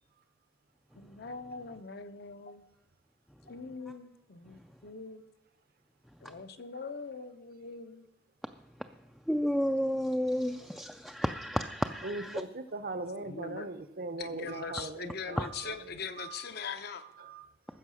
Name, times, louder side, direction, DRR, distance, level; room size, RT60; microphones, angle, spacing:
voice 1, 0.9-2.6 3.5-5.2 6.2-8.1 13.2-13.7 14.2-17.0, left 5 dB, 60° left, 9 dB, 0.7 m, -42 dB
voice 2, 9.3-12.4 15.4-15.5, equal, ahead, 6 dB, 0.3 m, -31 dB
voice 3, 12.0-15.8 16.2-16.5 17.2-17.4, right 3 dB, 55° right, 11 dB, 0.8 m, -39 dB
14.5 x 6.4 x 6.3 m, 0.84 s
head